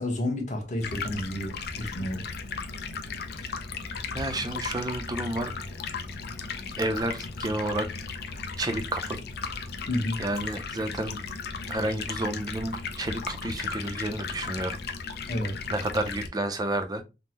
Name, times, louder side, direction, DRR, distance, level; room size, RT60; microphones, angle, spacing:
voice 1, 0.0-2.2 9.9-10.2 15.3-15.6, left 1 dB, 40° left, 0.9 m, -30 dB
Stream, 0.8-16.3, left 5 dB, 60° left, 0.4 m, -36 dB
voice 2, 4.1-5.5 6.8-7.9 8.6-9.2 10.2-11.2 11.7-14.8 15.7-17.0, right 1 dB, 20° right, 0.4 m, -30 dB
3.5 x 2.0 x 2.8 m
head